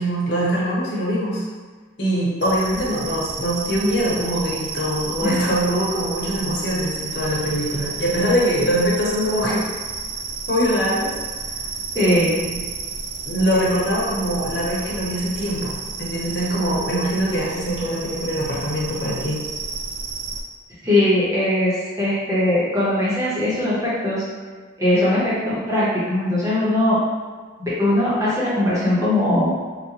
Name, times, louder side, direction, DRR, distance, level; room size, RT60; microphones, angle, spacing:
voice 1, 0.0-1.4 2.0-9.6 10.5-11.1 11.9-12.6 13.3-19.4, equal, 60° left, -6 dB, 1.0 m, -23 dB
sound 1, 2.4-20.4, right 4 dB, 65° right, 0.4 m, -32 dB
voice 2, 11.9-12.4 20.8-24.2 24.8-27.0 27.6-29.5, left 1 dB, 15° right, -9 dB, 1.1 m, -20 dB
3.7 x 2.5 x 2.9 m, 1.5 s
head